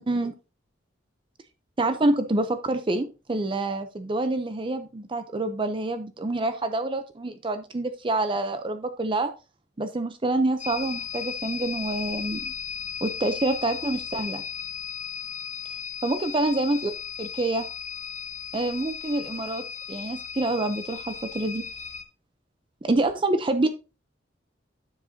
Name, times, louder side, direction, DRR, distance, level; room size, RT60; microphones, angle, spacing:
voice 1, 1.8-9.3 9.8-12.5 13.0-14.4 16.0-16.9 17.2-17.6 18.5-19.6 19.9-21.6 22.8-23.7, right 2 dB, 30° right, 9 dB, 0.6 m, -27 dB
sound 1, 10.6-22.0, left 7 dB, 40° left, 1.5 m, -36 dB
9.6 x 7.3 x 2.7 m, 0.30 s
head